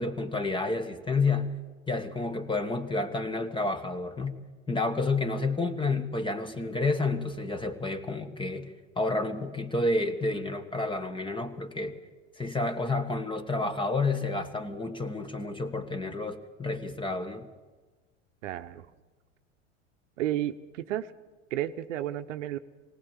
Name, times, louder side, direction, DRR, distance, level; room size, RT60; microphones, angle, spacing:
voice 1, 0.0-1.6 1.9-4.3 4.7-12.0 12.4-17.5, left 3 dB, 15° left, 10 dB, 1.5 m, -30 dB
voice 2, 18.4-18.9 20.2-21.1 21.5-22.6, right 12 dB, 70° right, 10 dB, 1.0 m, -32 dB
19.5 x 18.5 x 7.3 m, 1.3 s
hypercardioid pair, 95°, 38 cm